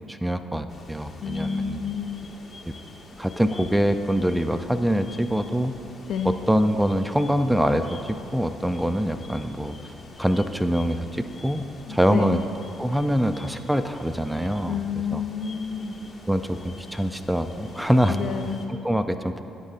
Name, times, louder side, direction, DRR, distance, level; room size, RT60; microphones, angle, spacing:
voice 1, 0.1-1.8 3.2-5.7 6.2-8.0 8.3-9.8 10.2-12.4 12.8-14.8 15.1-15.2 16.3-18.2 18.7-19.4, equal, 5° right, 9 dB, 0.3 m, -24 dB
sound 1, 0.7-18.7, left 2 dB, 40° left, 0.9 m, -46 dB
voice 2, 1.2-2.3 6.1-6.4 11.9-12.4 14.7-16.0 18.1-18.6, left 6 dB, 55° left, 5 dB, 0.5 m, -29 dB
11.0 x 4.1 x 3.7 m, 2.8 s
figure-of-eight pair, 45°, 0 cm